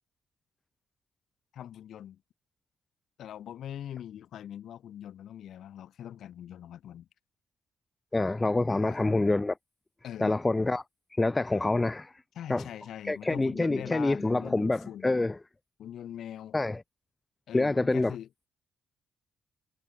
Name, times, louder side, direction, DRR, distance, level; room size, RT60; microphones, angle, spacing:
voice 1, 1.5-2.2 3.2-7.1 8.7-9.0 10.0-10.4 12.4-15.2 15.8-16.6 17.5-18.5, left 10 dB, 60° left, 1.7 m, -42 dB
voice 2, 8.1-9.5 10.2-10.8 11.1-12.1 12.5-12.7 13.0-15.4 16.5-16.8 17.5-18.1, left 2 dB, 20° left, 0.7 m, -26 dB
hypercardioid pair, 45°, 0 cm